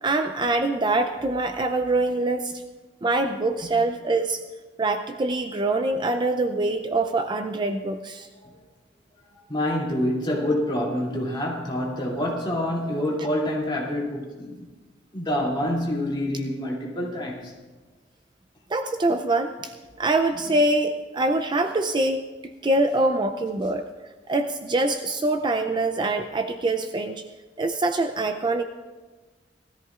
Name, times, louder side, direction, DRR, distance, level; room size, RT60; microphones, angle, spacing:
voice 1, 0.0-2.5 3.0-4.4 4.8-8.3 18.7-19.7 20.0-23.9 24.3-27.2 27.6-28.6, right 2 dB, 25° right, 7 dB, 0.4 m, -24 dB
voice 2, 9.3-14.6 15.1-17.5, left 1 dB, 25° left, -4 dB, 2.7 m, -27 dB
19.0 x 13.5 x 2.4 m, 1.3 s
head